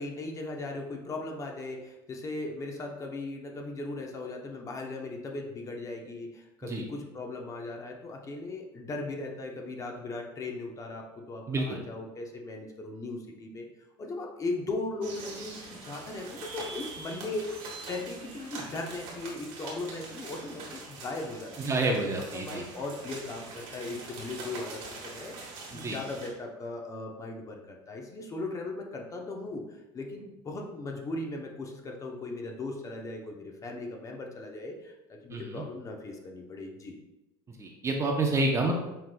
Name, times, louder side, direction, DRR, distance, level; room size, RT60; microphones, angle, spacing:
voice 1, 0.0-13.7 14.0-17.6 17.9-21.8 22.3-25.3 25.7-29.6 29.9-37.0, left 2 dB, 30° left, 1 dB, 0.7 m, -38 dB
voice 2, 11.5-11.8 21.7-22.6 25.7-26.0 35.3-35.6 37.5-38.8, right 2 dB, 25° right, 2 dB, 0.6 m, -29 dB
sound 1, 15.0-26.3, right 3 dB, 60° right, 1.3 m, -43 dB
5.7 x 3.2 x 2.2 m, 0.98 s
supercardioid pair, 110°, 12 cm